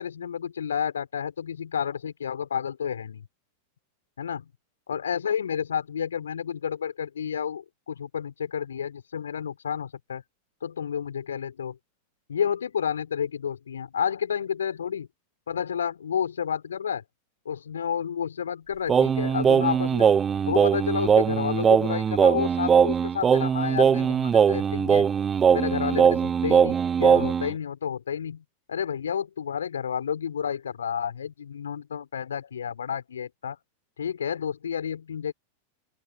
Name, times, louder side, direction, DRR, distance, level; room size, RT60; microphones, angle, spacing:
voice 1, 0.0-3.3 4.2-4.5 4.9-10.2 10.6-11.8 12.3-15.1 15.5-17.0 17.5-20.1 20.5-25.1 25.5-33.6 34.0-35.3, left 8 dB, 70° left, 3.9 m, -30 dB
Singing, 18.9-27.5, right 7 dB, 20° right, 0.6 m, -21 dB
open air
figure-of-eight pair, 90°, 0 cm